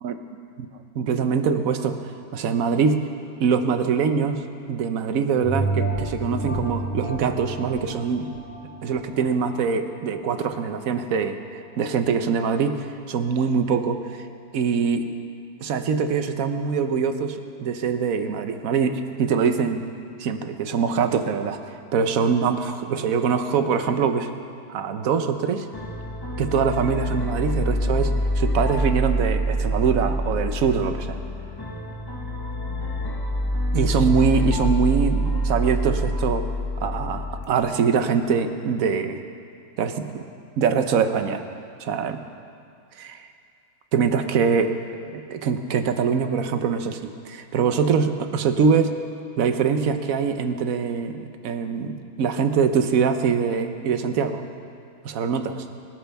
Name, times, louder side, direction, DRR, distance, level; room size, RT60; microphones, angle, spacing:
voice 1, 0.9-2.0 2.3-3.1 3.4-4.4 4.7-8.3 8.8-14.0 14.5-15.1 15.6-19.8 20.2-21.6 21.9-24.4 24.7-25.6 26.4-28.1 28.4-31.2 33.7-36.5 36.8-39.2 39.8-40.2 40.6-41.4 41.8-42.2 43.0-43.3 43.9-44.8 45.0-49.0 49.4-54.4 55.0-55.6, right 6 dB, 55° right, 8 dB, 1.1 m, -23 dB
sound 1, 5.4-10.3 10.8-10.9, right 3 dB, 80° left, 3.1 m, -30 dB
sound 2, 25.7-37.4, equal, 15° left, 1.0 m, -26 dB
24.5 x 12.5 x 3.5 m, 2.4 s
omnidirectional pair, 2.0 m